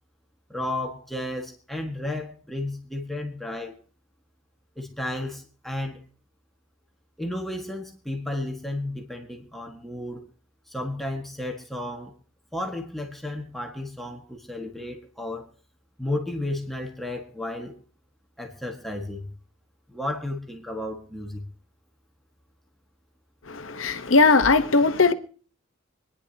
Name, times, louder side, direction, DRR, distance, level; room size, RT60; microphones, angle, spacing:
voice 1, 0.5-3.7 4.8-6.0 7.2-10.2 10.7-12.1 12.5-15.5 16.0-17.7 18.4-19.3 19.9-21.4, left 1 dB, ahead, 1.6 m, -33 dB
voice 2, 23.5-25.1, left 3 dB, 75° left, 1.0 m, -19 dB
26.0 x 10.0 x 2.8 m
head